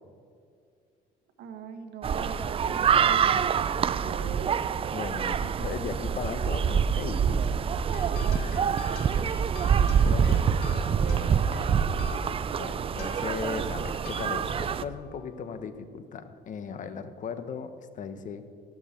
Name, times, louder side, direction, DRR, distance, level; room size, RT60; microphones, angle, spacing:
voice 1, 1.4-4.6 8.2-10.6 11.0-12.0, right 6 dB, 75° right, 6 dB, 1.6 m, -42 dB
sound 1, 2.0-14.8, right 7 dB, 35° right, 0.4 m, -26 dB
voice 2, 4.9-7.8 10.1-10.4 12.6-18.4, left 6 dB, 50° left, 11 dB, 1.0 m, -37 dB
sound 2, 7.9-15.8, left 12 dB, 75° left, 0.9 m, -48 dB
13.5 x 12.0 x 4.4 m, 2.4 s
cardioid pair, 110°, 17 cm